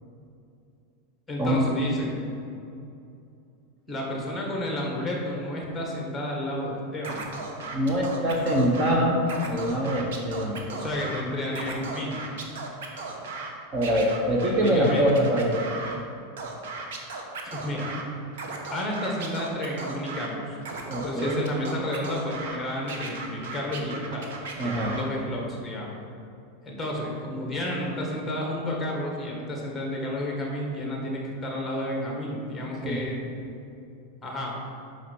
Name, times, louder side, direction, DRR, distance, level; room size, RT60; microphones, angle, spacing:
voice 1, 1.3-2.1 3.9-7.2 10.7-12.2 14.4-15.1 17.5-18.0 18.7-20.6 20.9-24.3 24.6-25.9 26.6-33.2 34.2-34.5, left 1 dB, 10° left, -1 dB, 1.5 m, -31 dB
Scratching (performance technique), 7.0-8.9 9.2-11.2 11.5-13.5 13.8-16.0 16.4-18.0 18.3-20.3 20.6-22.6 22.9-25.1, right 3 dB, 80° right, 1.1 m, -36 dB
voice 2, 7.7-10.6 13.7-15.6 20.9-21.5 24.6-24.9 32.8-33.0, equal, 25° right, -2 dB, 0.9 m, -24 dB
5.7 x 5.5 x 6.2 m, 2.6 s
supercardioid pair, 155°, 0 cm